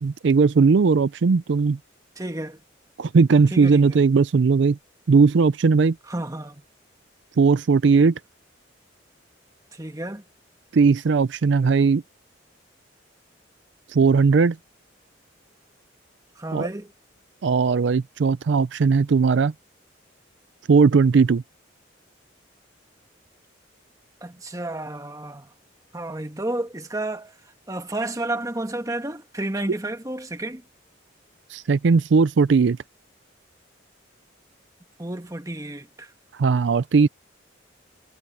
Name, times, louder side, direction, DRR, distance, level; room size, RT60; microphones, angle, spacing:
voice 1, 0.0-1.8 3.0-4.8 5.1-6.0 7.4-8.2 10.7-12.0 13.9-14.6 16.5-16.7 17.4-19.5 20.7-21.4 31.5-32.8 36.3-37.1, right 4 dB, 65° right, 0.4 m, -18 dB
voice 2, 2.2-2.6 3.5-4.1 6.1-6.6 9.7-10.2 16.4-16.9 24.2-25.5 25.9-27.4 27.7-30.6 35.0-36.1, right 1 dB, 15° right, 1.4 m, -31 dB
head